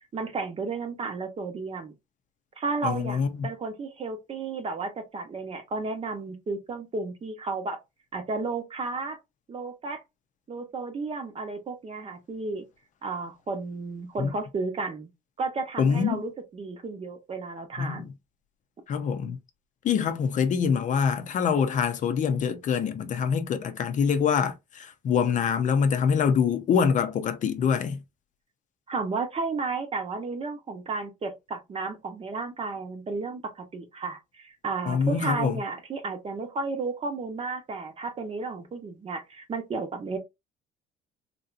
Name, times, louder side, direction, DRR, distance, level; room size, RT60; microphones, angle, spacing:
voice 1, 0.1-1.9 2.6-7.8 8.1-9.2 9.5-10.0 10.5-12.6 13.0-15.1 15.4-18.1 28.9-40.2, right 4 dB, 35° right, 0.9 m, -33 dB
voice 2, 2.8-3.5 14.2-14.3 15.8-16.3 17.8-18.1 18.9-19.4 19.8-28.0 34.8-35.6, left 6 dB, 50° left, 0.6 m, -25 dB
3.3 x 2.7 x 2.5 m
cardioid pair, 110°, 17 cm